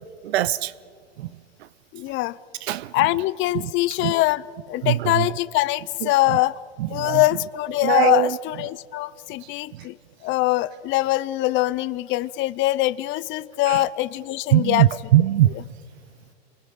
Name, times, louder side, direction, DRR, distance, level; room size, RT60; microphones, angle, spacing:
voice 1, 0.2-0.7 1.2-1.3 2.7-2.9 3.5-3.7 4.0-4.1 4.8-5.3 6.3-6.4 6.8-7.2 7.8-8.4 13.7-13.8 14.5-15.5, right 14 dB, 80° right, 0.7 m, -21 dB
voice 2, 1.9-2.4 2.9-6.6 6.9-10.0 10.2-14.9 15.5-15.6, left 17 dB, 40° left, 0.6 m, -23 dB
28.0 x 22.0 x 5.8 m
hypercardioid pair, 115°, 31 cm